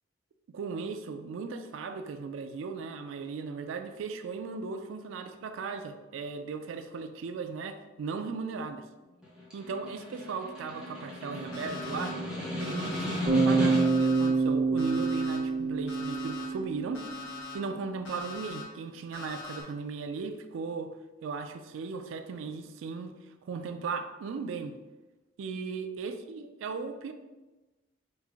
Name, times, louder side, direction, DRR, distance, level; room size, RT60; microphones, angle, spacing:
voice 1, 0.5-8.8 9.5-12.2 12.6-17.0 17.5-20.9 21.2-23.2 23.5-24.8 25.4-27.1, right 4 dB, 90° right, 8 dB, 0.3 m, -37 dB
Snare drum, 9.2-14.1, left 1 dB, 5° right, 0.7 m, -35 dB
Alarm, 11.5-12.1 12.6-13.2 13.7-14.3 14.8-15.4 15.9-16.4 16.9-17.5 18.0-18.6 19.1-19.6, left 5 dB, 80° left, 0.8 m, -42 dB
Bass guitar, 13.3-17.3, right 4 dB, 40° right, 0.6 m, -27 dB
3.1 x 2.4 x 3.4 m, 1.1 s
head